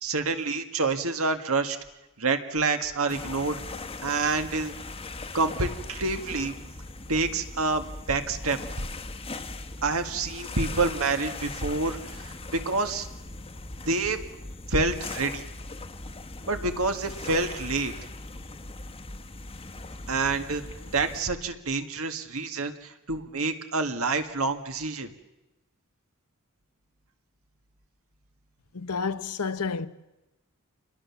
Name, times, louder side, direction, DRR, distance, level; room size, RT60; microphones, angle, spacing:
voice 1, 0.0-1.8 2.2-3.6 4.0-4.7 5.3-6.5 7.1-8.6 9.8-13.1 13.9-14.2 14.7-15.4 16.5-17.9 20.1-20.6 20.9-25.1, right 3 dB, 65° right, 1.9 m, -27 dB
sound 1, 3.1-21.2, left 2 dB, 25° left, 1.2 m, -40 dB
voice 2, 28.7-29.9, left 5 dB, 85° left, 1.1 m, -30 dB
28.5 x 21.5 x 7.2 m
head